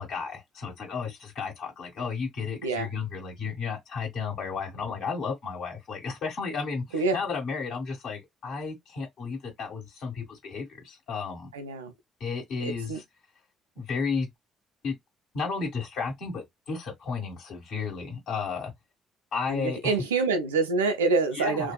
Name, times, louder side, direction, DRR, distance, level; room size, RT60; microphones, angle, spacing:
voice 1, 0.0-11.5 12.2-13.0 13.7-14.3 14.8-14.9 15.3-18.7 19.3-19.9 21.3-21.7, left 5 dB, 60° left, 1.3 m, -33 dB
voice 2, 11.5-11.9 12.6-13.0 19.5-21.7, right 4 dB, 80° right, 0.4 m, -26 dB
2.5 x 2.3 x 2.2 m
figure-of-eight pair, 45°, 0 cm